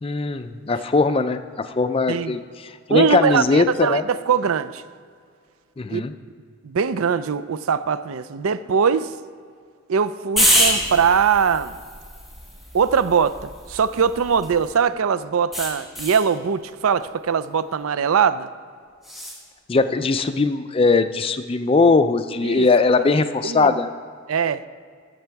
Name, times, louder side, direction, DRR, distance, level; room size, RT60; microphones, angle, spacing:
voice 1, 0.0-4.0 5.8-6.1 19.7-23.9, left 3 dB, 25° left, 0.3 m, -20 dB
voice 2, 2.9-4.8 5.9-6.0 6.6-9.1 9.9-11.8 12.7-18.5 22.4-22.7 23.4-23.8 24.3-24.7, right 6 dB, 75° right, 0.4 m, -21 dB
sound 1, 10.4-14.8 15.5-16.3 19.0-19.4, equal, ahead, 1.5 m, -25 dB
14.5 x 6.6 x 4.6 m
head